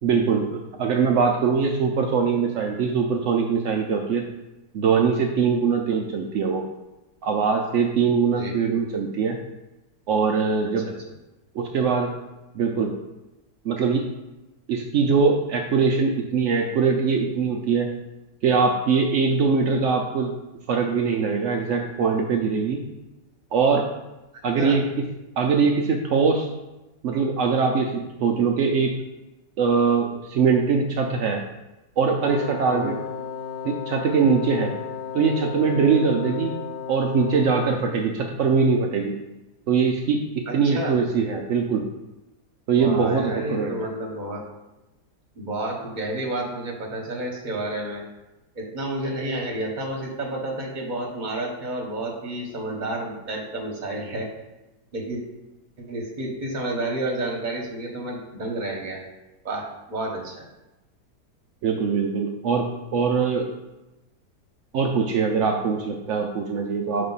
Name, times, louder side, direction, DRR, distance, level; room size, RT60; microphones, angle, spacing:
voice 1, 0.0-4.2 4.7-6.6 7.2-9.4 10.1-10.9 11.5-12.1 12.5-12.9 13.6-14.0 14.7-17.9 18.4-20.3 20.7-22.8 23.5-23.8 24.4-25.0 25.4-26.5 27.0-28.9 29.6-31.4 32.0-33.0 33.6-34.7 35.1-36.5 36.9-39.2 39.7-41.9 42.7-43.8 61.6-62.7 62.9-63.5 64.7-67.0, right 5 dB, 75° right, 1 dB, 0.7 m, -22 dB
Wind instrument woodwind instrument, 32.2-37.9, left 6 dB, 90° left, 1.3 m, -34 dB
voice 2, 40.5-41.0 42.8-44.4 45.4-48.0 48.5-54.3 54.9-55.2 55.9-59.0 59.4-60.4, right 1 dB, 30° right, -1 dB, 1.1 m, -30 dB
5.8 x 3.2 x 5.4 m, 1.0 s
omnidirectional pair, 1.8 m